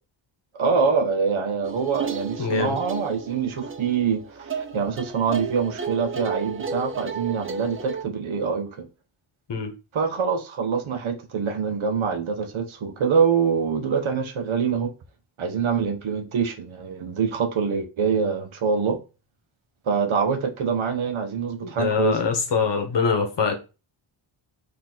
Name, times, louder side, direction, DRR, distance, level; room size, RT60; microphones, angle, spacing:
voice 1, 0.5-8.9 9.9-14.9 15.4-19.0 19.9-22.2, right 6 dB, 75° right, 1.0 m, -25 dB
sound 1, 1.6-8.0, right 5 dB, 30° right, 0.4 m, -33 dB
voice 2, 2.4-2.8 9.5-9.7 21.6-23.6, left 5 dB, 60° left, 1.0 m, -23 dB
4.4 x 2.9 x 3.9 m
wide cardioid pair, 125°, 48 cm